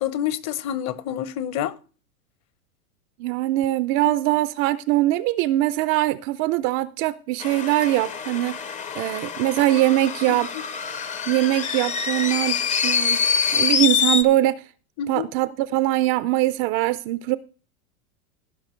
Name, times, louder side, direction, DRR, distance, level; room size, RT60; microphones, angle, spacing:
voice 1, 0.0-1.7 10.3-10.4 15.0-15.3, left 10 dB, 35° left, 1.0 m, -27 dB
voice 2, 3.2-8.6 9.0-10.5 11.3-13.2 13.5-14.6 15.1-17.4, right 16 dB, 35° right, 0.4 m, -22 dB
sound 1, 7.4-14.2, left 6 dB, 15° left, 0.6 m, -25 dB
16.5 x 5.7 x 4.4 m
supercardioid pair, 135°, 43 cm